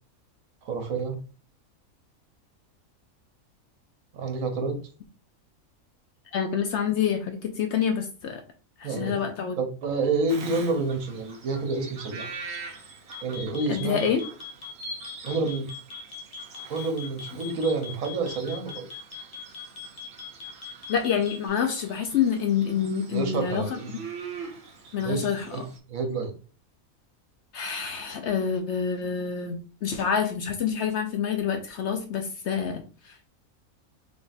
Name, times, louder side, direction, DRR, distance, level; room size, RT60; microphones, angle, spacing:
voice 1, 0.6-1.2 4.1-4.8 8.8-9.2 9.6-12.6 13.2-14.1 15.2-15.7 16.7-18.9 23.1-24.0 25.0-25.6 25.9-26.3, right 3 dB, 70° right, 5 dB, 1.2 m, -29 dB
voice 2, 6.3-8.4 8.8-9.6 13.7-14.2 20.9-23.8 24.9-25.6 27.5-33.3, left 7 dB, 65° left, 5 dB, 0.7 m, -27 dB
Bird vocalization bird call bird song, 10.3-25.8, right 4 dB, 55° right, 0.9 m, -44 dB
sound 1, 13.1-21.5, left 8 dB, 85° left, 1.5 m, -40 dB
3.5 x 2.5 x 4.0 m, 0.37 s
omnidirectional pair, 1.5 m